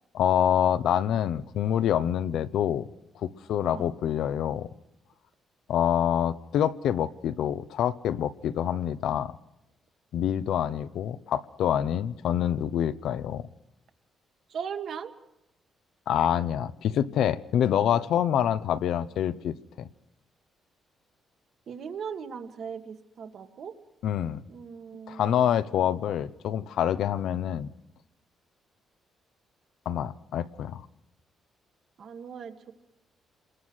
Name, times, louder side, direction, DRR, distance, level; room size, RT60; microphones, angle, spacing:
voice 1, 0.1-2.9 3.2-4.7 5.7-9.3 10.1-13.4 16.1-19.9 24.0-24.4 25.1-27.7 29.9-30.8, left 10 dB, 70° left, 0.9 m, -26 dB
voice 2, 14.5-15.1 21.7-23.7 24.5-26.0 32.0-32.7, right 7 dB, 50° right, 1.8 m, -39 dB
28.0 x 21.5 x 6.4 m
cardioid pair, 170°, 0 cm